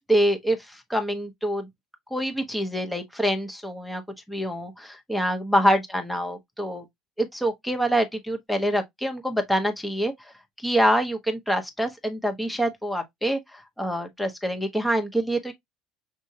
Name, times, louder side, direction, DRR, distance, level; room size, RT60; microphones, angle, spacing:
voice 1, 0.1-1.7 2.1-4.0 4.3-6.8 7.2-10.1 10.6-15.5, equal, 5° left, 1.2 m, -25 dB
6.2 x 2.7 x 2.7 m
supercardioid pair, 80°, 0 cm